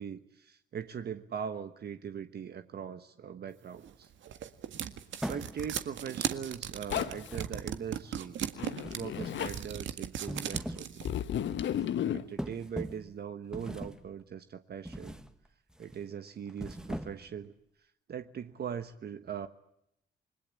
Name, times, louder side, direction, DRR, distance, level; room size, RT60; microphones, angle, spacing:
voice 1, 0.0-4.1 5.2-8.4 8.9-11.1 12.1-15.2 15.8-17.5 18.1-19.5, right 8 dB, 55° right, 9 dB, 1.3 m, -40 dB
sound 1, 3.8-11.1, right 9 dB, 70° right, 1.8 m, -37 dB
sound 2, 5.2-5.9 6.9-7.8 8.8-9.5 10.1-10.9 11.3-11.5 12.4-13.1 13.5-14.1 14.8-15.3 15.7-16.0 16.5-17.4, equal, 5° right, 1.7 m, -41 dB
Zipper (clothing), 6.9-7.4 8.5-9.6 11.0-12.3, left 10 dB, 70° left, 1.3 m, -33 dB
28.5 x 21.5 x 8.7 m, 0.77 s
cardioid pair, 90°, 20 cm